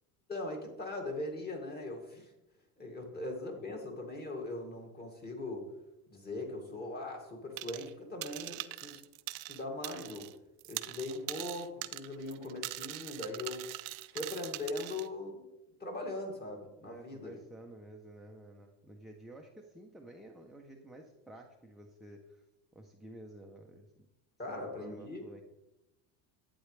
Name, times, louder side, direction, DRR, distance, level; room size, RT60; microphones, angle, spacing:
voice 1, 0.3-2.3 2.8-5.8 6.1-9.0 9.5-10.3 10.7-13.7 14.1-15.5 15.8-17.4 24.4-25.3, left 2 dB, 20° left, 1 dB, 2.3 m, -40 dB
sound 1, 7.6-7.9 8.2-10.3 10.6-15.1, right 20 dB, 60° right, 0.6 m, -42 dB
voice 2, 16.8-22.4 22.7-23.9 24.5-25.4, right 1 dB, ahead, 0 dB, 0.7 m, -52 dB
11.5 x 8.8 x 3.3 m, 0.92 s
supercardioid pair, 135°, 43 cm